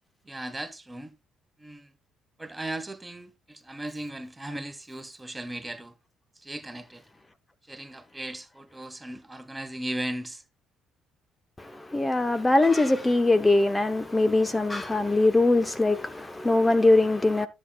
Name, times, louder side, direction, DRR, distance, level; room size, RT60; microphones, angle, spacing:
voice 1, 0.3-1.1 1.6-1.9 2.4-5.9 6.4-7.0 7.7-10.4, right 1 dB, 15° right, 1.3 m, -37 dB
voice 2, 11.6-17.5, left 2 dB, 15° left, 0.9 m, -22 dB
13.0 x 7.6 x 2.4 m
figure-of-eight pair, 50°, 0 cm